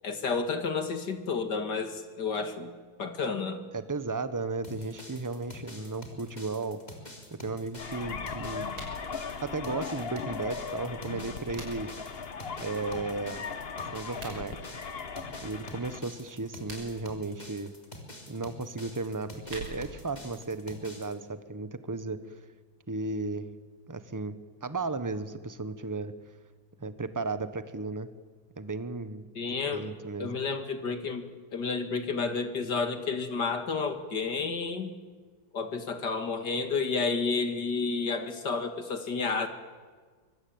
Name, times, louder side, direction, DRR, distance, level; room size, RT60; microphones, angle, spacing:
voice 1, 0.0-2.7 3.0-3.6 29.4-29.9 30.2-31.2 31.5-34.9 35.5-39.5, left 4 dB, 60° left, 8 dB, 2.7 m, -31 dB
voice 2, 3.7-6.8 7.3-8.7 9.4-11.9 12.6-13.4 13.9-14.6 15.4-17.7 18.3-22.4 22.9-23.6 23.9-24.3 24.6-26.1 26.8-28.1 28.6-30.3, right 3 dB, 10° right, 12 dB, 1.0 m, -35 dB
sound 1, 4.6-21.1, left 1 dB, 20° left, 3.7 m, -47 dB
sound 2, 7.8-16.0, left 5 dB, 35° left, 1.2 m, -38 dB
sound 3, 8.7-9.0 11.1-12.0 14.0-14.4 16.4-17.1 19.1-20.1, right 1 dB, 90° right, 6.6 m, -45 dB
24.5 x 24.5 x 8.8 m, 1.5 s
omnidirectional pair, 2.1 m